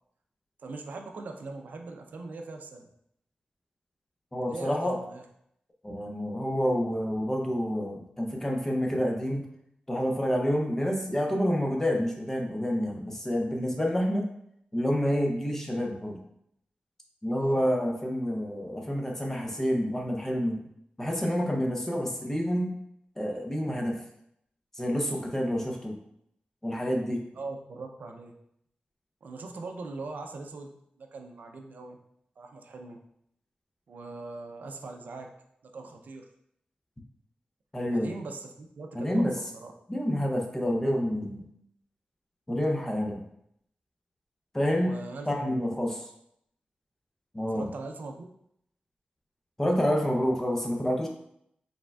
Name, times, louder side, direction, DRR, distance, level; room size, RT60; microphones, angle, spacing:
voice 1, 0.6-2.9 4.5-5.2 17.4-17.6 27.3-28.3 29.2-32.0 32.4-33.0 33.9-35.3 35.6-36.3 37.9-39.3 39.5-39.7 44.8-45.8 47.5-48.3, right 3 dB, 70° right, 4 dB, 0.4 m, -41 dB
voice 2, 4.3-5.0 5.8-9.5 9.9-14.3 14.7-16.2 17.2-20.6 21.0-22.7 23.2-24.0 24.7-26.0 26.6-27.2 37.7-38.1 38.9-39.3 39.9-41.5 42.5-43.2 44.5-45.0 45.3-45.9 47.3-47.7 49.6-51.1, equal, 15° left, 1 dB, 0.6 m, -28 dB
4.9 x 3.3 x 2.3 m, 0.73 s
wide cardioid pair, 160°, 3 cm